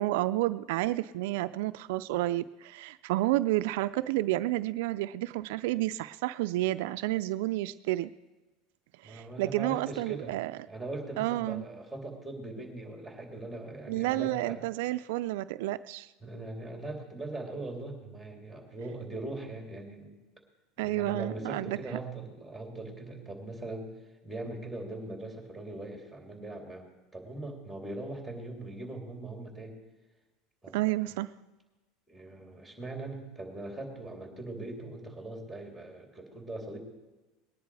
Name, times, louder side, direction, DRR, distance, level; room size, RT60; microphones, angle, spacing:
voice 1, 0.0-8.1 9.0-10.6 11.2-11.6 13.9-16.1 20.8-21.8 30.7-31.3, right 17 dB, 75° right, 12 dB, 0.4 m, -30 dB
voice 2, 9.0-10.3 10.7-14.6 16.2-20.1 20.8-23.9 24.2-26.9 27.1-29.8 30.6-30.9 32.1-36.8, right 2 dB, ahead, 2 dB, 3.1 m, -40 dB
20.0 x 10.5 x 4.8 m, 1.1 s
supercardioid pair, 135°, 0 cm